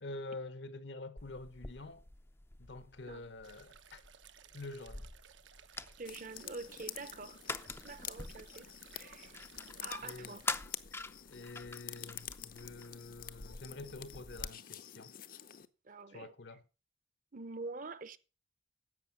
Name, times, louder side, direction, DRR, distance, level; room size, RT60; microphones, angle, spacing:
voice 1, 0.0-2.0 2.6-4.0 4.5-5.1 10.0-10.4 11.3-15.1 16.1-16.6, left 2 dB, 65° left, 1.0 m, -47 dB
sound 1, 1.2-14.5, left 3 dB, 15° left, 0.5 m, -46 dB
sound 2, 3.4-10.5, right 8 dB, 80° right, 1.0 m, -60 dB
voice 2, 6.0-7.4 7.8-8.7 8.9-9.3 9.8-10.4 15.8-16.3 17.3-18.2, right 3 dB, 45° right, 0.8 m, -46 dB
sound 3, 6.1-15.7, left 11 dB, 50° left, 0.7 m, -48 dB
11.0 x 7.9 x 6.0 m
head